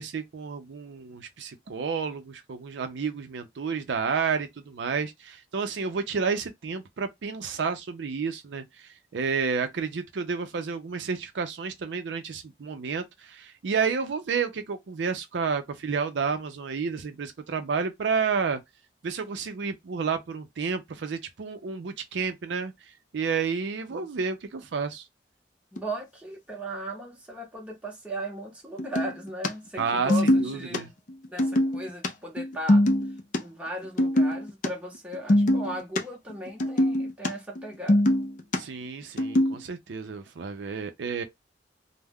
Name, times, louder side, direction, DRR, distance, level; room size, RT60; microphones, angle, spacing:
voice 1, 0.0-8.6 9.1-18.6 19.0-22.7 23.1-25.1 29.8-30.9 38.5-41.2, right 5 dB, 75° right, 0.4 m, -30 dB
voice 2, 25.7-30.9 31.3-32.8 33.4-38.0, right 1 dB, 5° right, 0.8 m, -37 dB
sound 1, 25.8-25.9 28.8-29.5 29.8-30.8 31.1-32.1 32.4-33.4 33.8-34.7 34.9-36.0 36.3-37.3 37.6-38.6 39.2-39.6, left 1 dB, 45° left, 0.4 m, -23 dB
2.2 x 2.1 x 3.4 m
head